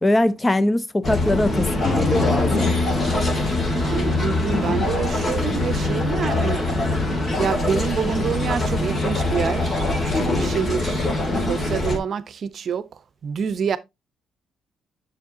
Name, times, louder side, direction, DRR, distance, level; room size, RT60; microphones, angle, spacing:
voice 1, 0.0-2.7, left 1 dB, 20° left, 0.6 m, -21 dB
sound 1, 1.0-12.0, left 2 dB, 40° left, 2.3 m, -23 dB
sound 2, 1.8-5.6, left 3 dB, 55° left, 4.2 m, -30 dB
voice 2, 3.7-6.9 7.4-11.1 11.3-12.9 13.2-13.8, right 7 dB, 55° right, 0.7 m, -27 dB
7.5 x 6.5 x 2.7 m
cardioid pair, 90°, 0 cm